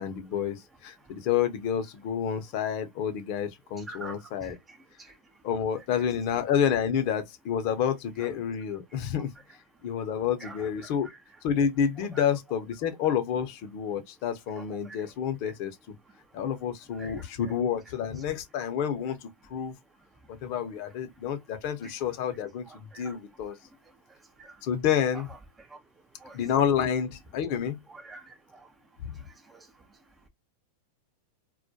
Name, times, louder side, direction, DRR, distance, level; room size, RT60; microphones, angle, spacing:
voice 1, 0.0-4.6 5.4-9.3 9.8-11.1 11.4-15.7 16.3-19.7 20.3-23.6 24.6-25.3 26.3-27.8 29.0-29.1, left 8 dB, 55° left, 0.6 m, -29 dB
voice 2, 28.0-28.7 29.5-29.6, right 3 dB, 15° right, 0.4 m, -44 dB
2.2 x 2.1 x 2.6 m
hypercardioid pair, 105°, 0 cm